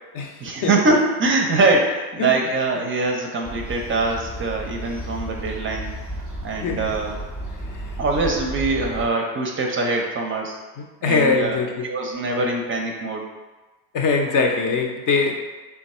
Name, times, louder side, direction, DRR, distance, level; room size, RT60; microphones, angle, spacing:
voice 1, 0.4-5.9 6.4-7.1 8.0-10.6 11.0-13.2, right 3 dB, 30° right, 1 dB, 0.5 m, -23 dB
sound 1, 3.4-9.1, right 1 dB, 5° right, 0.7 m, -33 dB
voice 2, 6.6-6.9 11.0-11.9 13.9-15.4, left 4 dB, 45° left, 2 dB, 0.6 m, -21 dB
3.4 x 2.3 x 4.1 m, 1.2 s
supercardioid pair, 95°, 44 cm